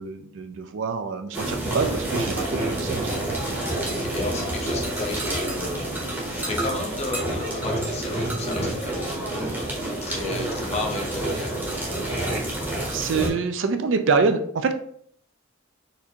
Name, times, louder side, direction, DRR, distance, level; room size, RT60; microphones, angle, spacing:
voice 1, 0.0-3.1 12.9-14.7, right 4 dB, 60° right, 7 dB, 0.4 m, -25 dB
sound 1, 1.3-13.3, right 1 dB, 10° right, 0.8 m, -28 dB
voice 2, 3.9-6.0 6.3-11.6, left 2 dB, 30° left, 1 dB, 0.6 m, -33 dB
4.2 x 2.6 x 2.8 m, 0.63 s
head